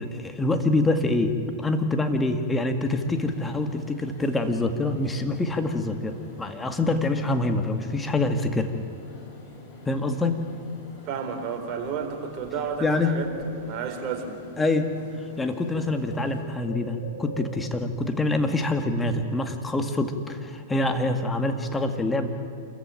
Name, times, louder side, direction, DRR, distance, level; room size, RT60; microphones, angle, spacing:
voice 1, 0.0-8.7 9.9-10.4 12.8-13.2 14.6-14.9 15.4-22.3, left 2 dB, 10° left, 6 dB, 2.0 m, -25 dB
sound 1, 2.8-16.4, left 2 dB, 45° left, 6.1 m, -48 dB
Bird, 11.0-11.1 11.4-13.9 15.0-15.2 15.5-17.9, left 2 dB, 85° left, 5.1 m, -42 dB
voice 2, 11.0-13.3 13.7-14.4, right 6 dB, 40° right, 3 dB, 4.2 m, -31 dB
27.5 x 14.5 x 9.0 m, 2.7 s
hypercardioid pair, 115°, 0 cm